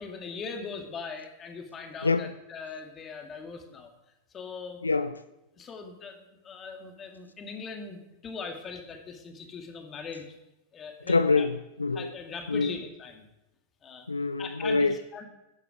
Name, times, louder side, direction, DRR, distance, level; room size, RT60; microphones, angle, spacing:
voice 1, 0.0-3.9 4.3-4.8 5.6-10.4 10.7-11.5 11.9-13.2 13.8-14.1 14.4-15.2, left 5 dB, 25° left, 2.2 m, -40 dB
voice 2, 4.8-5.1 11.1-12.1 12.5-12.7 14.1-14.9, left 4 dB, 80° left, 0.4 m, -25 dB
13.5 x 10.5 x 5.0 m
figure-of-eight pair, 90°, 0 cm